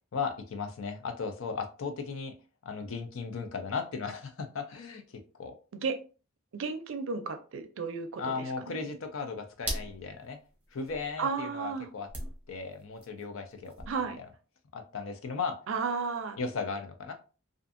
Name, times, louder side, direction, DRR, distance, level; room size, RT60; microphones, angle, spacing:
voice 1, 0.1-2.3 2.7-5.6 8.2-10.4 10.7-12.1 12.5-13.7 14.7-15.6 16.4-17.1, left 5 dB, 75° left, 0.5 m, -36 dB
voice 2, 6.5-8.8 11.2-11.9 13.9-14.2 15.7-16.4, right 5 dB, 70° right, 0.4 m, -33 dB
sound 1, 9.3-11.1 12.0-14.2, right 1 dB, 10° right, 0.8 m, -39 dB
2.6 x 2.5 x 2.4 m
head